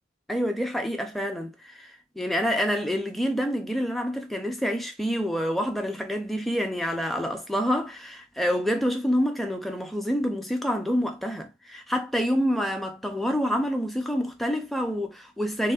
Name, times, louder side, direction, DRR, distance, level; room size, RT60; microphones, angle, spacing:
voice 1, 0.3-15.7, equal, ahead, 0.4 m, -27 dB
3.5 x 2.0 x 2.3 m
head